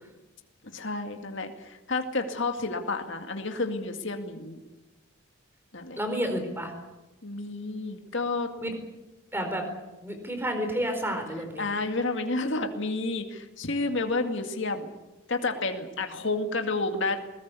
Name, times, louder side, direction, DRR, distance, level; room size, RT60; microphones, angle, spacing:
voice 1, 0.7-4.6 5.7-6.0 7.2-8.5 11.6-14.9 15.3-17.2, left 3 dB, 60° left, 5 dB, 2.2 m, -30 dB
voice 2, 6.0-6.7 8.6-8.8 9.3-9.6 10.0-11.7, equal, 10° right, 5 dB, 4.3 m, -30 dB
21.0 x 20.0 x 8.4 m, 1.1 s
head